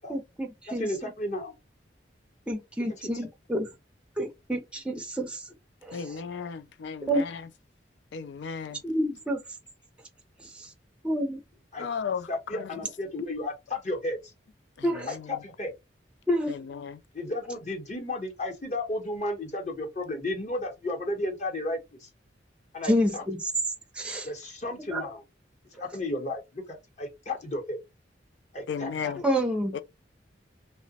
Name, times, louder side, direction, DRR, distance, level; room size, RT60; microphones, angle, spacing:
voice 1, 0.1-1.1 2.5-3.7 4.2-5.4 5.8-6.0 7.1-7.2 8.8-9.4 10.5-10.7 11.0-11.4 14.8-15.2 16.3-16.5 22.8-23.5 24.0-24.3 24.9-25.0 29.2-29.7, equal, 5° right, 0.5 m, -28 dB
voice 2, 0.8-1.5 11.7-11.9 12.3-14.2 15.1-15.7 17.1-22.1 22.7-23.2 24.2-25.2 25.8-27.8 28.5-29.1, left 1 dB, 40° left, 0.8 m, -33 dB
voice 3, 5.9-7.5 8.1-8.8 11.8-12.7 14.8-15.4 16.5-17.0 28.7-29.2 29.7-29.8, left 6 dB, 70° left, 0.4 m, -35 dB
2.9 x 2.1 x 2.7 m
head